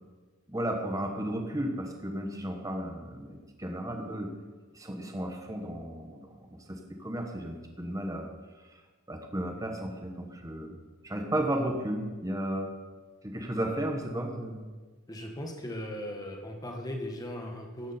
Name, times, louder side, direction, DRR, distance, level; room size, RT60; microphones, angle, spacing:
voice 1, 0.5-4.3 4.7-8.3 9.1-10.8 11.0-12.7 13.2-14.6, right 1 dB, 15° right, 3 dB, 1.2 m, -34 dB
voice 2, 15.1-18.0, left 1 dB, 15° left, 1 dB, 1.6 m, -38 dB
14.5 x 10.5 x 4.4 m, 1.4 s
head